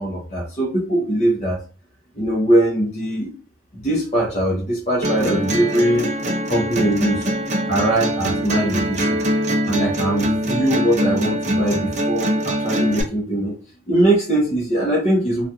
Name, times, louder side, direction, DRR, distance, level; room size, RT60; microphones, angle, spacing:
voice 1, 0.0-1.6 2.2-3.3 3.7-6.2 6.5-7.3 7.7-9.2 9.7-13.6 13.9-15.5, right 1 dB, 30° left, -4 dB, 0.6 m, -21 dB
sound 1, 5.0-13.0, equal, 35° right, 0.4 m, -23 dB
2.4 x 2.2 x 2.7 m, 0.37 s
head